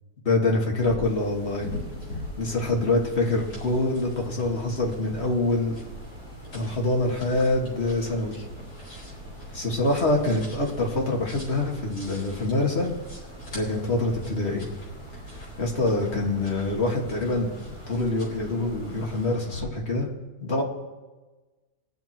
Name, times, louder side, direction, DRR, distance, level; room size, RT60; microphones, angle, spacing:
voice 1, 0.3-1.7 2.4-5.8 6.5-8.4 9.5-12.9 13.5-14.7 15.6-20.1 20.4-20.6, left 2 dB, 40° left, 0 dB, 2.3 m, -25 dB
sound 1, 0.8-19.7, left 2 dB, 70° left, 5.0 m, -43 dB
sound 2, 1.0-19.3, right 2 dB, 25° right, 3.9 m, -44 dB
21.5 x 7.3 x 4.5 m, 1.2 s
omnidirectional pair, 1.8 m